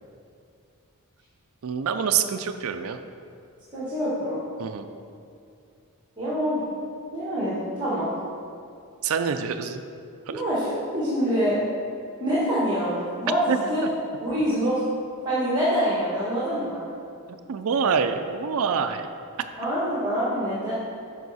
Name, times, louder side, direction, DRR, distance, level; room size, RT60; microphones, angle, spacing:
voice 1, 1.6-3.0 4.6-4.9 9.0-9.8 13.5-13.9 17.5-19.1, right 6 dB, 65° right, 8 dB, 0.4 m, -26 dB
voice 2, 3.7-4.4 6.2-6.6 7.1-8.1 10.3-11.6 12.2-13.9 14.2-14.8 15.2-16.9 19.6-20.7, equal, 20° right, -9 dB, 1.6 m, -25 dB
9.3 x 5.6 x 4.1 m, 2.5 s
head